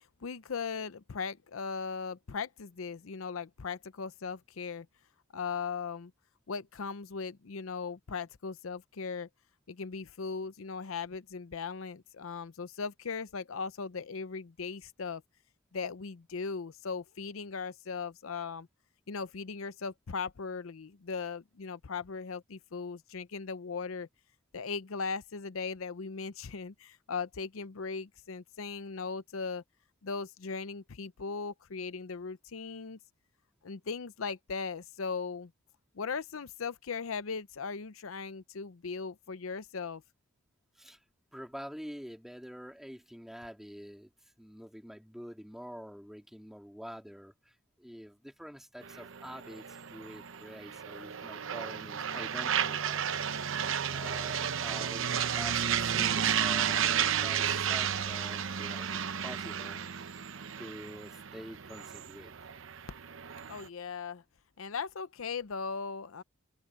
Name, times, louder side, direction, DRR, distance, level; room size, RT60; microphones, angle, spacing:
voice 1, 0.2-4.9 5.3-6.1 6.5-9.3 9.7-15.2 15.7-18.7 19.1-24.1 24.5-29.6 30.0-33.0 33.6-35.5 35.9-40.0 63.5-64.2 64.6-66.2, left 5 dB, 85° left, 0.7 m, -38 dB
voice 2, 41.3-44.1 44.4-53.2 53.9-60.2 60.6-62.3, equal, ahead, 2.4 m, -47 dB
sound 1, 48.8-63.7, right 8 dB, 70° right, 0.8 m, -33 dB
open air
head